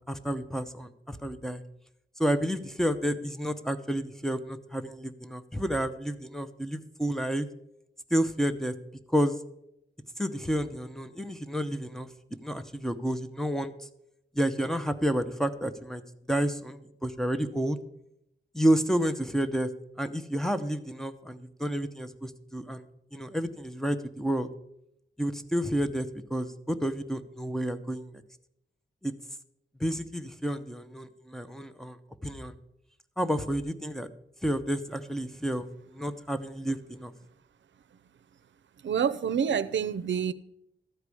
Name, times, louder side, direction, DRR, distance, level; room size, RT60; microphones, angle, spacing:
voice 1, 0.1-1.6 2.2-7.5 8.1-8.7 9.1-9.3 10.2-12.1 12.4-13.7 14.3-16.0 16.3-17.8 18.5-19.7 20.0-22.8 23.1-24.5 25.2-28.1 29.0-29.1 29.8-32.0 32.2-32.5 33.2-34.1 34.4-37.1, equal, ahead, 0.6 m, -30 dB
voice 2, 38.8-40.3, right 7 dB, 70° right, 0.6 m, -27 dB
13.5 x 4.8 x 8.3 m
wide cardioid pair, 155°, 20 cm